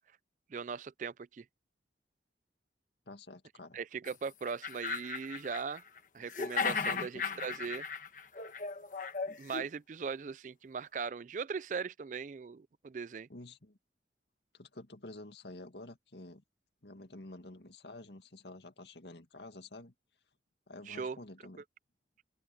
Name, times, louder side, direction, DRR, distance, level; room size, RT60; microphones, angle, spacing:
voice 1, 0.5-1.4 3.7-5.8 6.1-7.8 9.4-13.3 20.9-21.2, right 5 dB, 45° right, 0.4 m, -39 dB
voice 2, 3.1-3.8 6.8-7.4 13.3-13.8 14.5-16.4 16.8-19.9 20.7-21.6, left 2 dB, 70° left, 2.1 m, -49 dB
sound 1, 4.1-4.2 4.5-6.0 6.3-9.7, left 5 dB, 45° left, 1.3 m, -36 dB
head